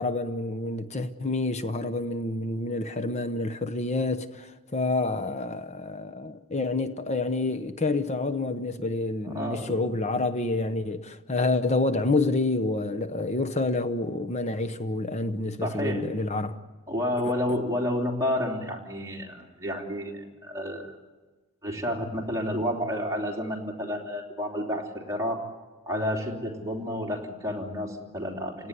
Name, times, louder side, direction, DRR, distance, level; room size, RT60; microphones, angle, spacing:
voice 1, 0.0-16.6 17.2-17.3, left 2 dB, 30° left, 0.9 m, -28 dB
voice 2, 9.2-9.8 15.2-16.0 16.9-21.0 21.6-25.4 25.9-28.7, left 1 dB, 15° right, 3.3 m, -30 dB
29.5 x 18.0 x 9.7 m
head